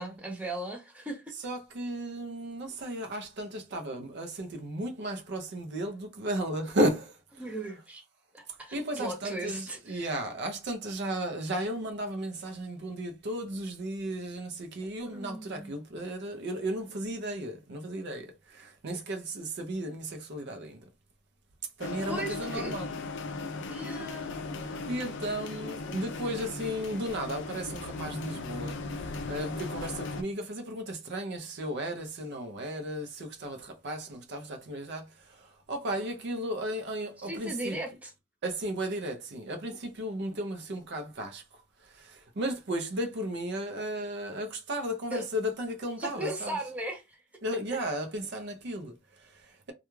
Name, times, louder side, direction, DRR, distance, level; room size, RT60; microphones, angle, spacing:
voice 1, 0.0-1.3 7.4-8.0 8.3-10.2 15.1-15.7 22.1-22.7 23.7-24.3 37.2-38.1 45.1-45.3 46.0-47.2, right 2 dB, 5° right, 0.5 m, -37 dB
voice 2, 1.4-7.4 8.7-20.8 21.8-22.9 24.7-28.8 29.0-37.8 38.4-46.6 47.4-49.7, right 1 dB, 55° right, 0.5 m, -35 dB
sound 1, 21.8-30.2, left 3 dB, 60° left, 0.4 m, -37 dB
2.3 x 2.2 x 3.0 m
head